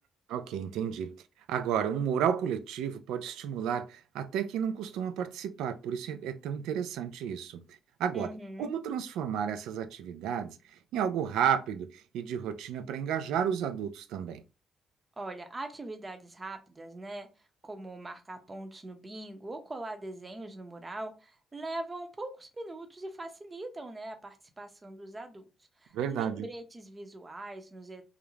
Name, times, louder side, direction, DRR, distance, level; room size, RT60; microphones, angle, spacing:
voice 1, 0.3-1.1 1.5-8.3 8.6-10.6 10.9-14.4 25.9-26.4, right 8 dB, 90° right, 0.3 m, -32 dB
voice 2, 8.1-8.7 15.2-17.3 17.6-25.4 25.8-28.0, right 2 dB, 25° right, 0.6 m, -42 dB
2.4 x 2.0 x 3.1 m
cardioid pair, 90°, 0 cm